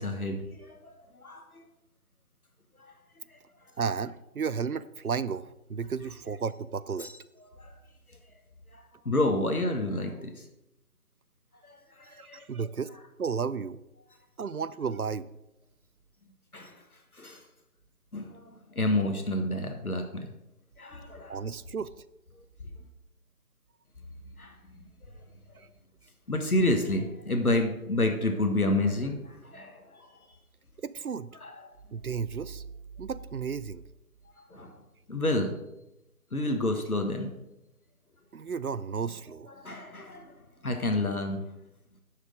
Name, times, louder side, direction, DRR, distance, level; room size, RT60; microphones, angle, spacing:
voice 1, 0.0-1.4 3.3-3.4 7.0-7.1 7.6-7.7 8.7-10.4 11.7-12.4 16.5-16.7 17.1-17.4 18.1-18.4 18.7-20.3 20.8-21.4 24.4-24.5 26.3-30.1 31.4-31.6 34.5-34.7 35.1-35.6 36.3-37.3 39.6-40.4 40.6-41.4, left 1 dB, 70° left, 4 dB, 1.5 m, -29 dB
voice 2, 3.8-7.1 12.1-12.9 13.2-13.8 14.4-15.3 21.3-21.9 25.6-25.7 30.8-31.3 31.9-32.6 33.0-33.8 38.3-39.5, right 6 dB, 70° right, 17 dB, 0.6 m, -33 dB
9.6 x 6.6 x 5.1 m, 0.91 s
figure-of-eight pair, 165°, 45 cm